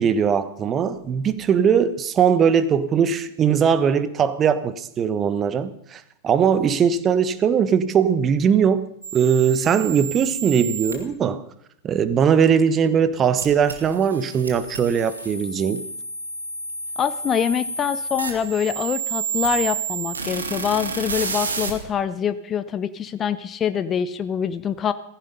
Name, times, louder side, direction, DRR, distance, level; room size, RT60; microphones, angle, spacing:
voice 1, 0.0-11.4 11.8-15.9, right 7 dB, 25° right, 1.2 m, -20 dB
sound 1, 9.0-10.9 13.4-21.7, right 5 dB, 75° right, 2.2 m, -30 dB
voice 2, 17.0-24.9, left 8 dB, 25° left, 0.7 m, -25 dB
16.0 x 15.0 x 5.4 m
figure-of-eight pair, 90°, 0 cm